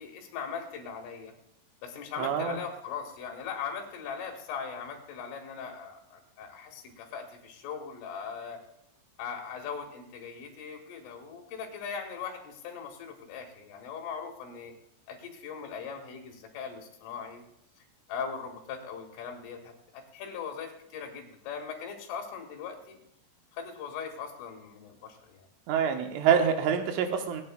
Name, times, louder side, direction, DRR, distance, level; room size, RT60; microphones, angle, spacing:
voice 1, 0.0-1.3 1.8-8.6 9.2-14.7 15.1-17.4 18.1-23.0 23.5-25.5, left 6 dB, 80° left, 2 dB, 4.3 m, -40 dB
voice 2, 2.2-2.6 25.7-27.4, right 7 dB, 80° right, 5 dB, 3.4 m, -26 dB
26.5 x 9.4 x 2.3 m, 0.78 s
omnidirectional pair, 5.8 m